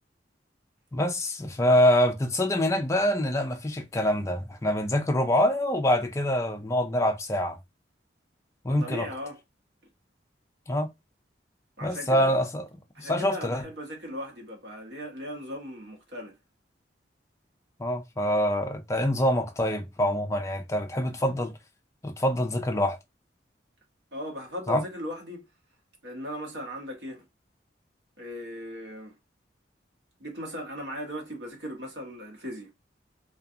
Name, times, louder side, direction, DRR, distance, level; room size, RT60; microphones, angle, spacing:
voice 1, 0.9-7.6 8.6-9.1 10.7-10.9 11.8-12.6 13.0-13.6 17.8-21.5 22.0-23.0 24.7-24.8, left 1 dB, 15° left, 0.4 m, -25 dB
voice 2, 8.7-9.4 11.8-12.3 12.9-16.4 24.1-25.4 26.0-27.2 28.2-29.2 30.2-32.7, equal, 65° right, 0.9 m, -38 dB
2.4 x 2.3 x 2.7 m
head